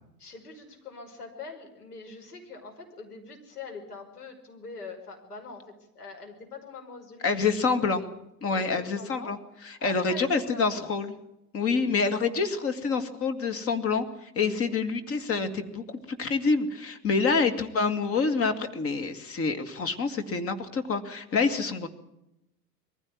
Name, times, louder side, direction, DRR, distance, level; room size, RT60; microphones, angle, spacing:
voice 1, 0.2-7.8 8.4-9.3 9.8-10.9 11.6-11.9 14.6-14.8 17.1-17.4 21.3-21.7, left 4 dB, 70° left, 3 dB, 5.5 m, -44 dB
voice 2, 7.2-8.0 8.4-9.4 9.6-11.1 11.5-21.9, left 4 dB, 30° left, 8 dB, 2.4 m, -27 dB
22.0 x 15.5 x 9.6 m, 0.87 s
figure-of-eight pair, 90°, 47 cm